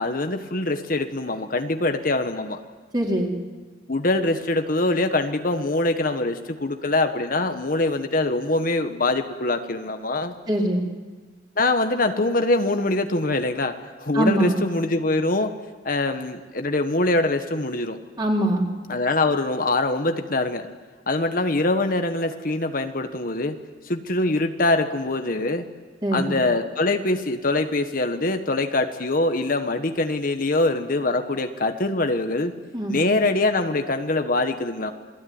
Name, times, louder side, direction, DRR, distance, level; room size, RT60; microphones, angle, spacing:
voice 1, 0.0-2.6 3.9-10.3 11.6-13.7 14.0-15.5 15.8-18.0 18.9-20.7 21.1-23.6 23.8-25.6 26.1-32.5 32.9-34.9, left 2 dB, 50° left, 7 dB, 1.4 m, -23 dB
voice 2, 2.9-3.3 10.5-10.8 14.1-14.6 18.2-18.7 26.0-26.3 32.7-32.9, right 1 dB, 25° right, -1 dB, 4.4 m, -22 dB
28.0 x 20.5 x 9.6 m, 1.4 s
head